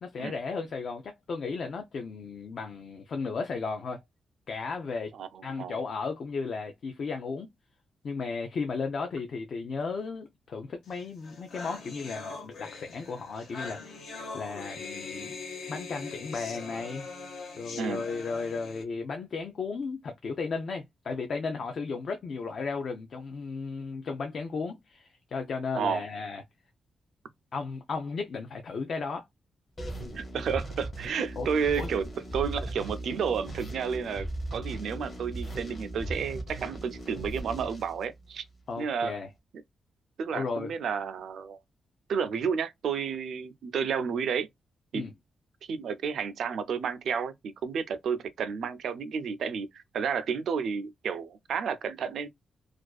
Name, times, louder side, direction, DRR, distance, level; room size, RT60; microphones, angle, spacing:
voice 1, 0.0-4.0 4.5-5.1 5.4-7.5 8.0-14.1 14.3-15.3 15.7-17.1 17.6-26.4 27.5-29.3 31.4-31.5 31.8-31.9 38.7-39.3 40.3-40.7 44.9-45.1, left 4 dB, 50° left, 0.4 m, -35 dB
voice 2, 5.1-5.8 17.7-18.0 25.8-26.0 30.1-32.1 32.3-38.4 38.8-39.1 40.2-41.6 42.1-44.5 44.9-45.0 45.6-52.3, right 6 dB, 70° right, 0.3 m, -31 dB
sound 1, 11.0-11.1 11.2-18.8, left 4 dB, 80° left, 0.8 m, -41 dB
sound 2, 29.8-38.6, right 1 dB, 30° left, 0.7 m, -38 dB
2.4 x 2.3 x 2.2 m
wide cardioid pair, 160°, 0 cm